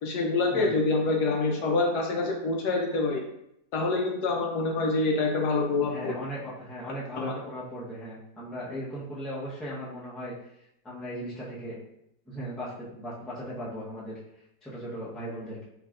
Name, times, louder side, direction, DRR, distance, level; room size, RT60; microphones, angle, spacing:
voice 1, 0.0-3.2 3.7-6.1 7.2-7.3, left 3 dB, 75° left, 1 dB, 1.1 m, -26 dB
voice 2, 5.8-10.3 10.8-11.8 12.3-14.1 14.6-15.6, equal, ahead, -7 dB, 0.5 m, -37 dB
4.6 x 2.8 x 2.4 m, 0.78 s
omnidirectional pair, 1.8 m